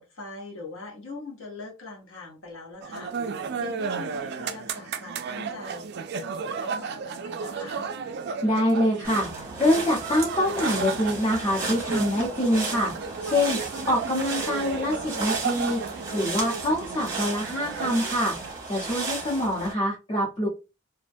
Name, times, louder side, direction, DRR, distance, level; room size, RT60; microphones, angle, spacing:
voice 1, 0.0-3.1 3.6-5.9 6.1-7.9 19.1-19.4, left 3 dB, 70° left, -1 dB, 1.0 m, -42 dB
sound 1, 2.8-18.5, right 5 dB, 50° right, 0.3 m, -34 dB
voice 2, 8.4-12.9 13.2-13.6 13.9-15.8 16.1-18.4 18.7-20.5, left 1 dB, 20° left, -6 dB, 0.8 m, -25 dB
sound 2, 9.0-19.7, right 3 dB, 15° right, 0.8 m, -34 dB
2.4 x 2.1 x 2.5 m, 0.29 s
head